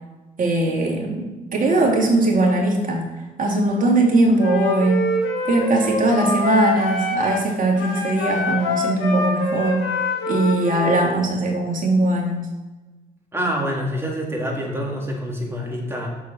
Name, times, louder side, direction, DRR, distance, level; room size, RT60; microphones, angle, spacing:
voice 1, 0.4-3.1 3.4-5.1 5.4-9.8 10.3-12.5, right 2 dB, 40° right, -1 dB, 3.0 m, -20 dB
Wind instrument woodwind instrument, 4.4-7.5 7.8-11.2, left 2 dB, 70° left, 1.6 m, -25 dB
voice 2, 13.3-16.1, equal, 10° right, -2 dB, 3.4 m, -26 dB
8.3 x 7.3 x 4.6 m, 1.2 s
figure-of-eight pair, 45°, 21 cm